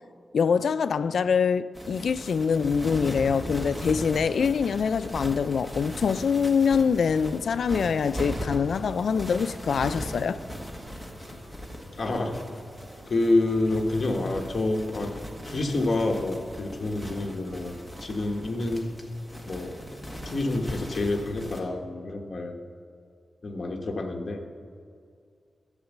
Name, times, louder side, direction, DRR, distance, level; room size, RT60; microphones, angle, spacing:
voice 1, 0.3-10.4, left 6 dB, 75° left, 0.4 m, -24 dB
sound 1, 1.7-21.6, equal, 5° right, 1.5 m, -39 dB
sound 2, 6.4-21.6, equal, 70° right, 3.6 m, -50 dB
voice 2, 12.0-12.4 13.1-15.1 15.4-18.9 19.5-22.5 23.4-24.4, left 2 dB, 40° left, 1.3 m, -28 dB
12.5 x 8.1 x 7.2 m
wide cardioid pair, 165°, 0 cm